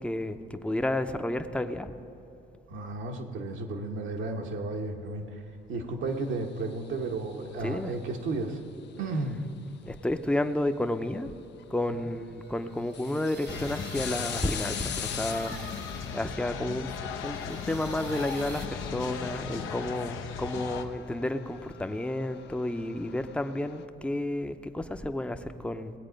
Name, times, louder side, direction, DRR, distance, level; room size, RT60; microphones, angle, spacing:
voice 1, 0.0-1.9 7.6-7.9 9.9-11.3 11.7-15.6 16.1-16.9 17.2-25.9, left 1 dB, 5° left, 8 dB, 0.6 m, -31 dB
voice 2, 2.7-5.4 5.7-8.6 9.0-9.4 12.0-12.1, right 3 dB, 75° right, 2 dB, 1.3 m, -33 dB
sound 1, 6.6-8.1 9.9-10.0 11.6-11.7 12.2-12.3 12.7-23.9, left 11 dB, 60° left, 0.5 m, -43 dB
sound 2, 12.4-16.4 16.9-18.7, right 6 dB, 55° right, 1.2 m, -47 dB
sound 3, 13.5-20.8, left 6 dB, 85° left, 0.8 m, -37 dB
18.5 x 8.1 x 5.2 m, 2.8 s
cardioid pair, 90°, 20 cm